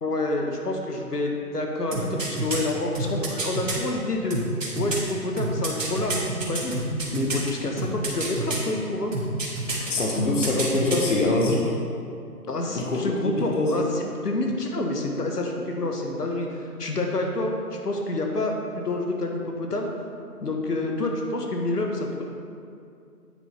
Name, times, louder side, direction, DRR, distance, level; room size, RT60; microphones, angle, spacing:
voice 1, 0.0-4.4 4.7-6.2 6.5-6.7 7.1-9.1 12.5-19.9 20.4-22.2, left 2 dB, 75° left, 1 dB, 1.4 m, -28 dB
sound 1, 1.9-3.8 4.3-7.5 7.8-8.7 9.1-9.9 10.1-11.1 11.4-11.5, right 2 dB, 55° right, 1.8 m, -28 dB
voice 2, 9.9-11.6 12.7-13.8, left 2 dB, 50° left, -1 dB, 1.1 m, -24 dB
9.0 x 7.5 x 3.4 m, 2.4 s
figure-of-eight pair, 160°, 47 cm